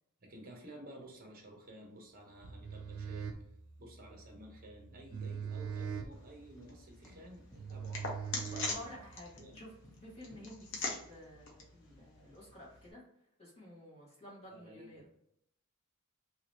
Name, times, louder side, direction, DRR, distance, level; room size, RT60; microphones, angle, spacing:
voice 1, 0.2-3.4 3.8-8.1 9.4-9.6 14.5-15.1, right 1 dB, 45° right, 1 dB, 0.9 m, -53 dB
sound 1, 2.3-9.3, right 6 dB, 75° right, 0.6 m, -43 dB
sound 2, 4.9-11.5, left 1 dB, 10° left, 0.6 m, -61 dB
sound 3, 6.1-12.9, left 3 dB, 60° left, 0.8 m, -44 dB
voice 2, 8.5-9.7 10.0-13.0 13.4-15.0, left 1 dB, 30° left, -5 dB, 1.4 m, -51 dB
3.0 x 2.8 x 3.1 m, 0.76 s
head